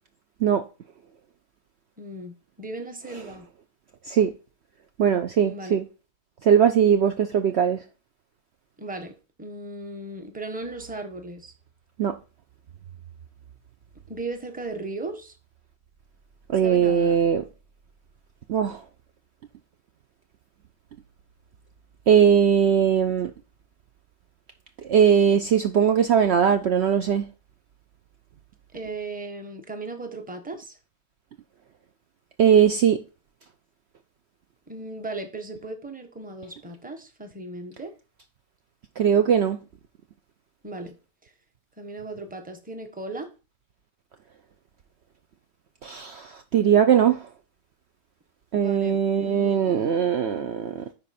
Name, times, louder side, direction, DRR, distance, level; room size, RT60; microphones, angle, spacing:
voice 1, 2.0-3.5 5.4-5.8 8.8-11.5 14.1-15.3 16.6-17.2 28.7-30.8 34.7-37.9 40.6-40.9 41.2-41.3 41.8-43.3 48.5-50.5, right 2 dB, 5° right, 1.0 m, -37 dB
voice 2, 5.0-5.9 6.4-7.8 12.0-12.1 16.5-17.4 18.5-18.8 22.1-23.3 24.9-27.3 32.4-33.0 39.0-39.6 45.8-47.3 48.5-50.8, right 8 dB, 60° right, 0.8 m, -20 dB
10.0 x 4.2 x 4.2 m
omnidirectional pair, 1.4 m